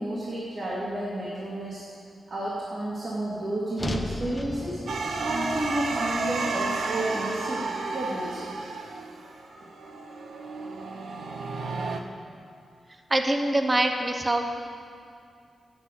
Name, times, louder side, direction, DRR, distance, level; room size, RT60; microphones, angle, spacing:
voice 1, 0.0-1.8 2.3-4.8 5.2-8.5 9.5-9.7, right 1 dB, 50° right, -8 dB, 2.4 m, -31 dB
sound 1, 3.8-8.0, left 1 dB, 20° left, 0.7 m, -37 dB
sound 2, 4.9-12.0, right 3 dB, 80° right, 0.8 m, -32 dB
voice 2, 13.1-14.4, right 1 dB, 20° right, 5 dB, 0.7 m, -24 dB
8.7 x 8.1 x 7.9 m, 2.3 s
wide cardioid pair, 115°, 0 cm